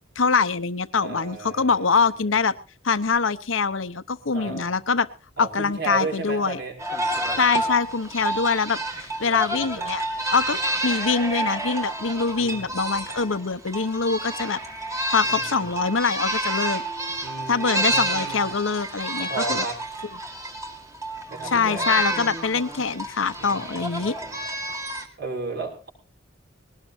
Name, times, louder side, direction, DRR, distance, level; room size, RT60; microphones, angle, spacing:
voice 1, 0.2-2.5 2.8-5.1 5.4-6.6 7.4-10.0 10.3-14.6 15.1-16.8 17.5-19.6 20.1-20.2 21.4-24.2, left 5 dB, 80° left, 13 dB, 0.9 m, -24 dB
voice 2, 1.0-2.0 4.3-4.7 5.4-6.7 9.2-9.9 12.4-12.7 15.2-15.7 17.2-18.4 19.3-19.8 21.3-22.0 23.4-24.4 25.2-25.9, right 3 dB, 60° right, 0 dB, 6.1 m, -34 dB
sound 1, 6.8-25.0, right 1 dB, 15° right, 2.3 m, -29 dB
20.5 x 18.0 x 2.7 m, 0.32 s
head